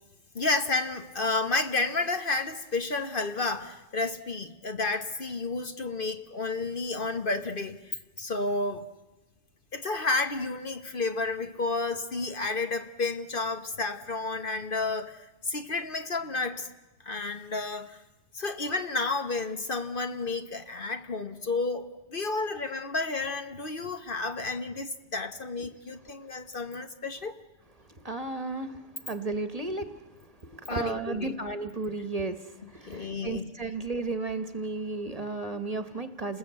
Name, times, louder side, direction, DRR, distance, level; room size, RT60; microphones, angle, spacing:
voice 1, 0.3-8.9 9.7-16.7 17.0-18.0 18.3-27.4 30.7-31.4 32.8-33.5, left 3 dB, 45° left, 1.2 m, -31 dB
voice 2, 28.0-29.9 30.4-36.4, right 3 dB, 30° right, 1.3 m, -34 dB
29.5 x 20.5 x 8.3 m
omnidirectional pair, 1.3 m